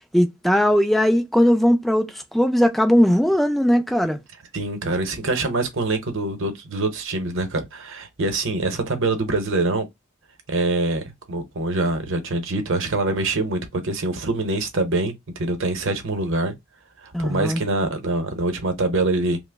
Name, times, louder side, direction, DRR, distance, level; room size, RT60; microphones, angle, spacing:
voice 1, 0.1-4.2 17.1-17.6, equal, ahead, 0.4 m, -19 dB
voice 2, 4.5-9.9 10.5-11.0 11.3-16.5 17.0-19.4, right 2 dB, 60° right, 0.8 m, -24 dB
2.9 x 2.0 x 3.4 m
head